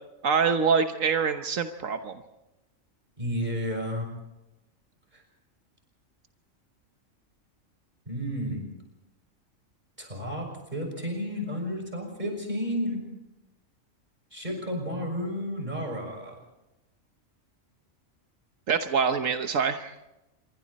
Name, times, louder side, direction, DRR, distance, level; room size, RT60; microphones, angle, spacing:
voice 1, 0.2-2.1 18.7-19.9, right 6 dB, 80° right, 7 dB, 1.5 m, -25 dB
voice 2, 3.2-4.1 5.1-5.2 8.1-8.6 10.0-13.0 14.3-16.3, equal, 35° right, 2 dB, 6.5 m, -32 dB
27.0 x 23.5 x 4.2 m, 0.94 s
omnidirectional pair, 1.4 m